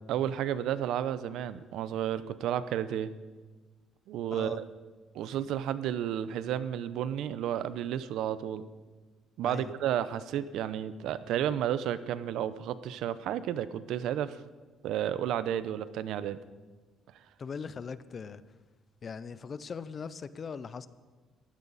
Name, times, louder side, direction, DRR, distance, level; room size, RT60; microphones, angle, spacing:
voice 1, 0.1-3.1 4.1-4.6 5.1-8.6 9.4-14.4 14.8-16.4, right 10 dB, 70° right, 14 dB, 0.8 m, -32 dB
voice 2, 17.4-18.4 19.0-20.9, left 5 dB, 30° left, 15 dB, 0.6 m, -40 dB
22.0 x 15.5 x 4.2 m, 1.3 s
cardioid pair, 155°, 0 cm